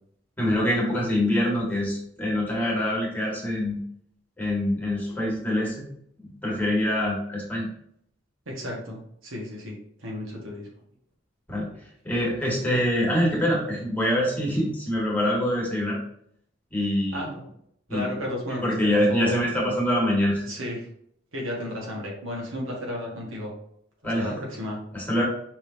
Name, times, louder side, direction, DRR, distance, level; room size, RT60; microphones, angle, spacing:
voice 1, 0.4-3.8 4.4-5.8 6.2-7.7 11.5-11.7 12.0-16.0 16.7-17.4 17.9-18.1 18.6-20.4 24.0-24.4 24.9-25.2, left 1 dB, 10° left, -4 dB, 1.7 m, -25 dB
voice 2, 8.4-10.7 17.1-17.4 17.9-19.4 20.5-20.9 21.3-23.5 24.0-24.8, left 1 dB, 90° right, -2 dB, 1.5 m, -33 dB
5.3 x 3.5 x 2.7 m, 0.68 s
head